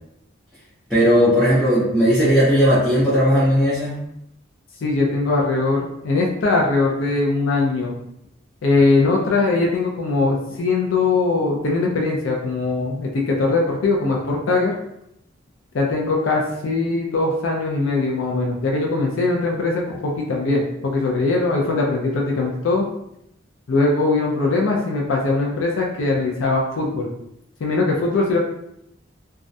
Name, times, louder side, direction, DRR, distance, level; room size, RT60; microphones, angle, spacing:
voice 1, 0.9-4.0, equal, ahead, -11 dB, 0.5 m, -16 dB
voice 2, 4.8-7.9 8.6-14.7 15.7-22.9 23.7-27.1 27.6-28.4, left 3 dB, 80° left, -1 dB, 0.4 m, -21 dB
2.3 x 2.0 x 2.6 m, 0.78 s
head